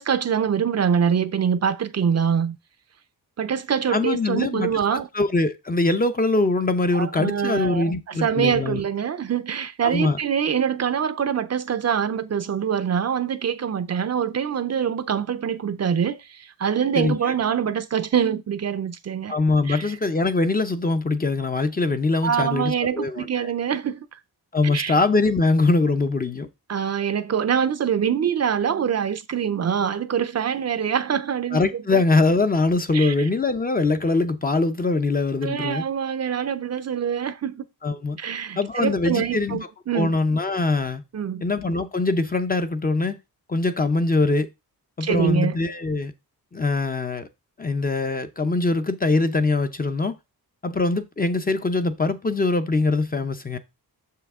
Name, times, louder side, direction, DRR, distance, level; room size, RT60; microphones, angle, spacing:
voice 1, 0.0-2.6 3.4-5.1 6.9-19.4 19.7-19.9 22.2-24.2 24.6-25.0 26.7-31.6 31.9-32.0 32.9-33.3 35.4-37.6 38.2-40.1 41.1-41.4 45.0-45.6, right 8 dB, 45° right, 0.5 m, -24 dB
voice 2, 3.9-8.8 9.8-10.2 17.0-17.1 19.3-23.5 24.5-26.5 31.5-35.8 37.8-38.2 38.6-39.6 39.9-41.0 41.4-43.2 43.5-44.5 45.0-46.1 46.5-47.3 47.6-50.2 50.6-53.6, left 3 dB, 25° left, 0.5 m, -22 dB
6.9 x 5.6 x 3.6 m
wide cardioid pair, 150°, 38 cm